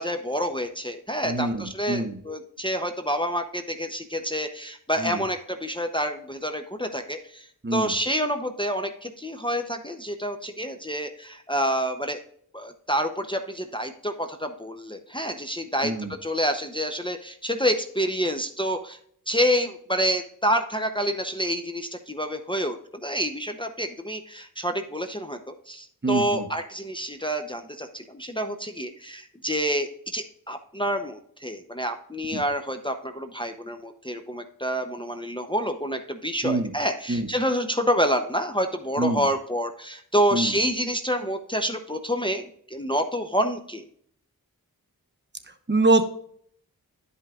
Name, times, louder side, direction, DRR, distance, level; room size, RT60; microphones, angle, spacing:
voice 1, 0.0-12.2 12.5-19.0 19.3-43.9, equal, 15° left, 5 dB, 0.7 m, -28 dB
voice 2, 1.2-2.2 5.0-5.2 7.6-7.9 15.8-16.1 26.0-26.4 32.3-32.4 36.4-36.7 37.1-37.3 39.0-39.2 40.3-40.5 45.7-46.1, right 2 dB, 30° right, 7 dB, 1.0 m, -24 dB
12.0 x 5.5 x 2.4 m, 0.64 s
cardioid pair, 45°, 37 cm